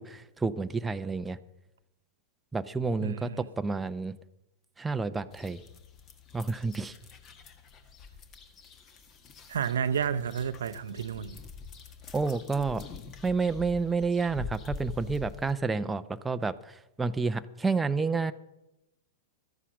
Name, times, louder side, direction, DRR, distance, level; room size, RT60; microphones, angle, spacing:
voice 1, 0.0-1.4 2.5-4.2 4.8-5.6 6.3-6.9 12.1-12.9 13.2-18.3, right 4 dB, 10° right, 0.6 m, -30 dB
voice 2, 3.0-3.5 9.5-11.4, right 7 dB, 75° right, 0.6 m, -31 dB
sound 1, 5.3-15.5, left 5 dB, 35° left, 1.4 m, -45 dB
13.0 x 9.9 x 6.2 m
hypercardioid pair, 105°, 0 cm